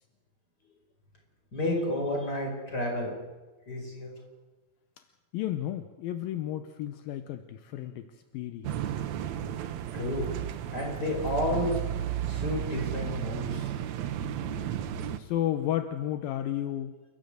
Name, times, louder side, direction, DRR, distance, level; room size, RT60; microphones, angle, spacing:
voice 1, 1.5-3.1 3.7-4.1 9.9-10.3 10.7-11.9 12.2-13.7, left 1 dB, 25° left, 1 dB, 5.3 m, -31 dB
voice 2, 5.3-8.1 8.3-8.7 15.2-16.9, left 12 dB, 80° left, 9 dB, 2.5 m, -32 dB
sound 1, 8.6-15.2, right 10 dB, 75° right, 1.7 m, -33 dB
29.0 x 12.5 x 8.0 m, 1.3 s
omnidirectional pair, 4.3 m